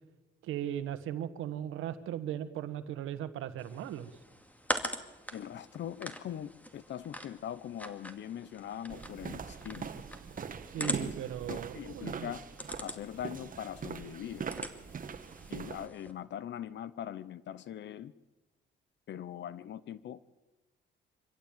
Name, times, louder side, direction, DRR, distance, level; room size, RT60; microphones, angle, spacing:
voice 1, 0.4-4.1 10.7-12.3, right 11 dB, 90° right, 12 dB, 1.4 m, -37 dB
sound 1, 3.6-16.1, equal, 5° left, 2.3 m, -43 dB
voice 2, 5.3-9.9 10.8-11.1 11.5-12.4 12.8-14.5 15.5-18.1 19.1-20.2, left 10 dB, 65° left, 17 dB, 0.8 m, -41 dB
sound 2, 8.9-15.9, right 6 dB, 45° right, 1.5 m, -42 dB
25.5 x 15.5 x 9.0 m, 1.1 s
cardioid pair, 90°, 20 cm